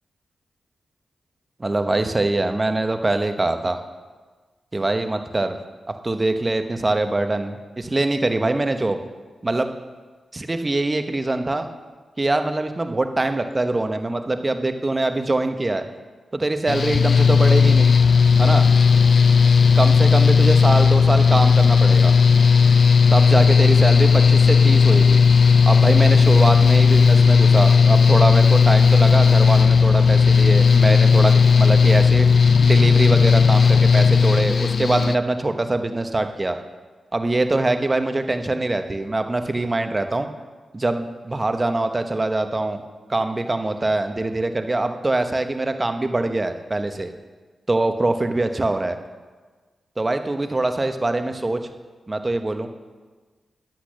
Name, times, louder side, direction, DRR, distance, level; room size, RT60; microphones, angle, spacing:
voice 1, 1.6-3.8 4.7-5.6 6.0-9.0 9.4-9.7 10.3-11.7 12.2-15.9 16.3-17.9 18.4-18.7 19.7-22.1 23.1-25.2 25.7-32.3 32.6-36.6 37.1-40.3 40.7-42.8 43.1-47.1 47.7-49.0 50.0-51.6 52.1-52.7, right 2 dB, 30° right, 8 dB, 1.0 m, -23 dB
Mechanical fan, 16.7-35.2, left 5 dB, 60° left, 0.4 m, -14 dB
10.5 x 8.2 x 6.4 m, 1.4 s
cardioid pair, 50°, 0 cm